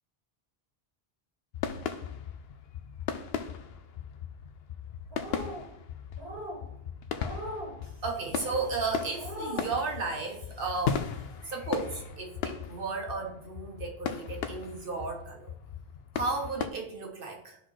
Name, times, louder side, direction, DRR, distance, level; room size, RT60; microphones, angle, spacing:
sound 1, 1.5-16.7, left 7 dB, 75° left, 0.8 m, -37 dB
sound 2, 5.1-5.7 6.2-6.6 7.2-7.7 8.3-8.7 9.1-9.7, equal, 85° right, 2.0 m, -39 dB
voice 1, 8.0-11.0 11.5-15.5 16.1-17.6, right 4 dB, 60° right, 1.3 m, -34 dB
12.0 x 4.1 x 3.1 m
omnidirectional pair, 1.0 m